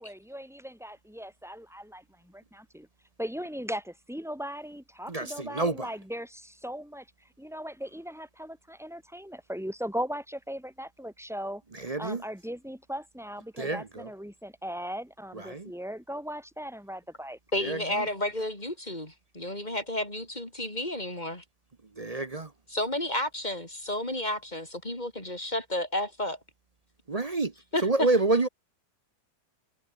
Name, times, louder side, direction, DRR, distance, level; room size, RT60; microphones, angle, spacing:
voice 1, 0.0-2.9 3.2-7.1 7.4-11.6 12.0-17.4, equal, ahead, 7.3 m, -38 dB
voice 2, 5.1-5.9 11.8-12.2 13.6-14.1 15.5-15.7 17.6-17.8 22.0-22.5 27.1-27.5 27.8-28.5, right 3 dB, 30° right, 0.8 m, -27 dB
voice 3, 17.5-21.4 22.7-26.4 27.7-28.1, left 1 dB, 25° left, 6.3 m, -31 dB
omnidirectional pair, 1.6 m